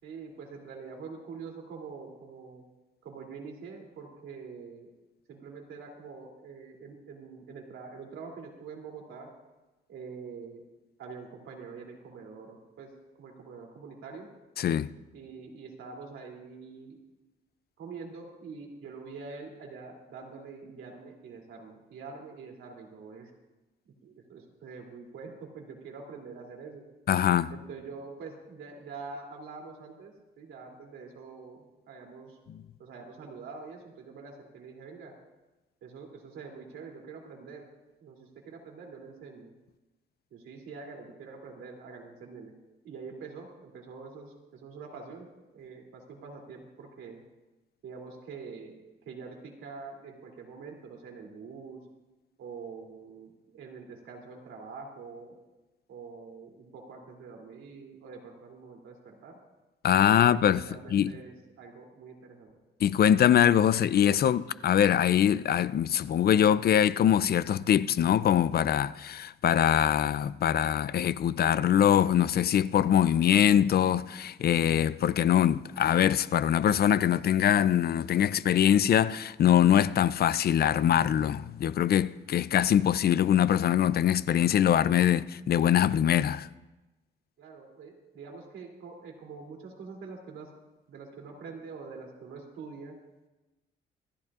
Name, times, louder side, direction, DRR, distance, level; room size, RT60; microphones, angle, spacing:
voice 1, 0.0-2.6 3.0-4.9 5.3-9.3 9.9-10.6 11.0-12.9 13.2-14.3 15.1-17.0 17.8-23.3 24.0-26.8 27.5-32.4 32.8-35.1 35.8-37.7 38.0-39.5 40.3-42.5 42.8-47.2 47.8-51.8 52.4-55.4 55.9-59.4 60.0-62.5 87.4-90.5 90.9-92.9, right 4 dB, 80° right, 3.0 m, -45 dB
voice 2, 14.6-14.9 27.1-27.5 32.5-32.6 59.8-61.1 62.8-86.5, left 10 dB, 50° left, 0.5 m, -23 dB
26.0 x 10.5 x 2.5 m
cardioid pair, 90°, 20 cm